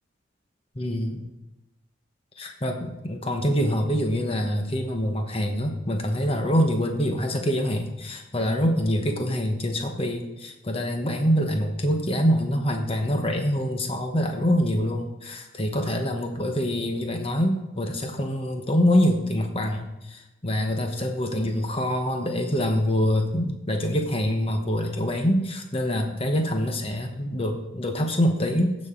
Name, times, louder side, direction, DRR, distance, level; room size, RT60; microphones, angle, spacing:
voice 1, 0.7-1.2 2.4-28.7, equal, 30° left, 4 dB, 1.1 m, -25 dB
15.5 x 6.4 x 3.8 m, 0.98 s
head